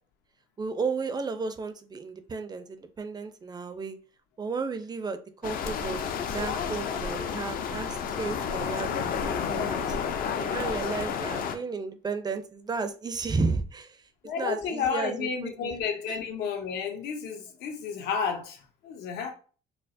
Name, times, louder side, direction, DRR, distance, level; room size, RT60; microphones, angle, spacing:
voice 1, 0.6-4.0 4.4-6.0 6.3-10.0 10.4-15.7 16.1-16.2, right 4 dB, 25° right, 0.4 m, -33 dB
sound 1, 5.4-11.5, left 7 dB, 60° left, 0.5 m, -31 dB
voice 2, 14.2-19.3, left 6 dB, 80° left, 0.8 m, -31 dB
4.5 x 2.0 x 2.6 m
cardioid pair, 110°, 17 cm